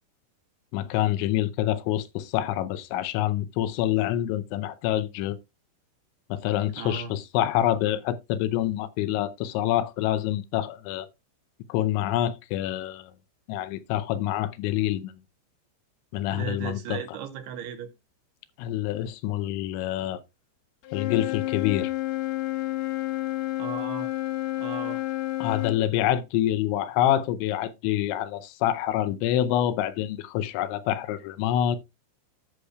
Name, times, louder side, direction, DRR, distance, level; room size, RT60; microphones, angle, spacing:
voice 1, 0.7-5.4 6.3-11.1 11.7-13.1 13.5-15.2 16.1-17.0 18.6-20.2 20.9-21.9 25.4-31.8, left 12 dB, 90° left, 3.1 m, -26 dB
voice 2, 6.8-7.2 16.3-17.9 23.6-24.1 24.6-25.0, right 7 dB, 75° right, 2.6 m, -36 dB
Wind instrument woodwind instrument, 20.8-25.8, left 17 dB, 75° left, 2.7 m, -30 dB
16.5 x 6.5 x 2.3 m
omnidirectional pair, 5.2 m